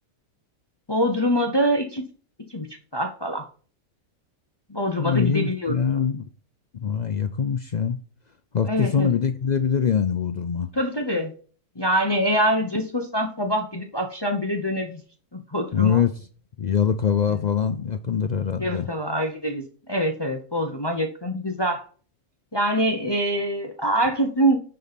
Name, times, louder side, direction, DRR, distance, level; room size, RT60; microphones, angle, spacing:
voice 1, 0.9-2.0 2.5-2.7 2.9-3.4 4.7-5.8 8.7-9.1 10.7-11.3 11.8-15.0 15.3-16.0 18.6-21.8 22.5-24.6, equal, 20° left, 4 dB, 0.9 m, -24 dB
voice 2, 5.0-6.3 6.7-8.0 8.5-10.7 15.7-16.3 16.6-18.9, left 7 dB, 65° left, 9 dB, 0.4 m, -23 dB
9.7 x 4.2 x 5.2 m, 0.40 s
omnidirectional pair, 1.5 m